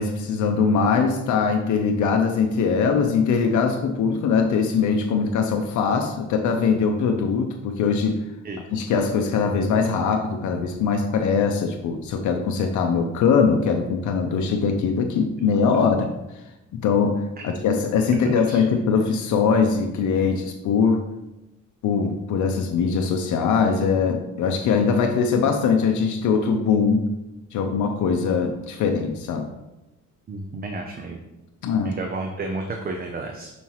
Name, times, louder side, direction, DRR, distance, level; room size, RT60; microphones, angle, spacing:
voice 1, 0.0-8.2 8.7-16.1 16.7-17.2 17.6-21.0 21.8-27.1 27.5-29.5 31.6-32.0, left 5 dB, 75° left, 3 dB, 0.7 m, -21 dB
voice 2, 18.2-18.6 30.3-31.2 31.8-33.5, right 3 dB, 30° right, 3 dB, 0.5 m, -32 dB
6.0 x 5.5 x 3.0 m, 0.96 s
cardioid pair, 140°, 30 cm